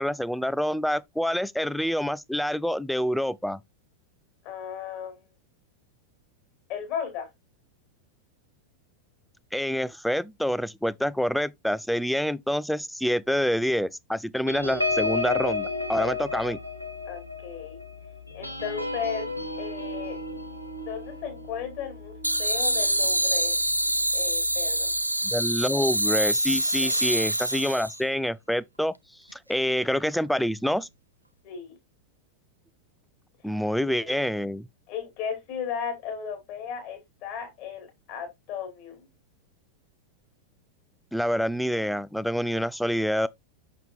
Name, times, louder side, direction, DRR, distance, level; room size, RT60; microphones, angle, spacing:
voice 1, 0.0-3.6 9.5-16.6 25.2-28.9 29.3-30.9 33.4-34.7 41.1-43.3, equal, ahead, 0.3 m, -27 dB
voice 2, 4.4-5.2 6.7-7.3 17.1-17.8 18.3-19.2 19.6-20.2 20.9-23.6 24.1-25.0 26.7-26.9 31.4-31.8 33.8-34.3 34.9-39.1, left 7 dB, 45° left, 2.9 m, -35 dB
sound 1, 14.5-23.4 23.8-24.0 24.3-24.6, left 3 dB, 90° left, 1.2 m, -33 dB
sound 2, 22.2-28.0, right 1 dB, 85° right, 0.4 m, -25 dB
6.5 x 6.1 x 2.4 m
figure-of-eight pair, 90°, 0 cm